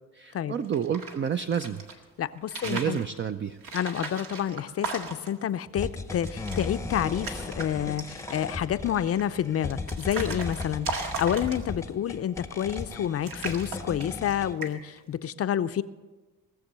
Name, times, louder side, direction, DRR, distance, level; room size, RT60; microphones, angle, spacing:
voice 1, 0.1-1.8 2.6-3.6, right 8 dB, 35° right, 9 dB, 0.5 m, -29 dB
sound 1, 0.6-1.9 2.4-3.0 3.6-5.4 5.8-5.9 6.2-6.7 7.0-7.7 8.0-8.5 9.2-11.9 12.6-13.0 13.3-14.3 14.6-15.0, right 4 dB, 75° right, 1.9 m, -37 dB
voice 2, 2.2-3.0 3.7-15.8, left 10 dB, 45° left, 13 dB, 0.5 m, -29 dB
sound 2, 5.8-14.5, left 3 dB, 10° left, 0.7 m, -37 dB
18.5 x 7.1 x 6.7 m, 1.3 s
cardioid pair, 105°, 34 cm